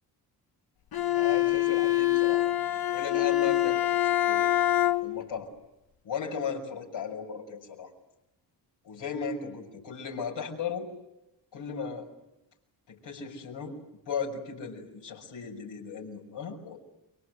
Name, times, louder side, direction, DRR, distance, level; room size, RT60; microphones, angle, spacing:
Bowed string instrument, 0.9-5.3, left 15 dB, 55° left, 1.1 m, -25 dB
voice 1, 1.1-2.5 2.9-4.4 5.0-5.5 6.0-7.9 8.8-10.9 11.5-12.1 12.9-13.7 14.0-16.8, left 6 dB, 85° left, 0 dB, 6.1 m, -36 dB
29.5 x 24.0 x 8.0 m, 0.93 s
cardioid pair, 60°, 43 cm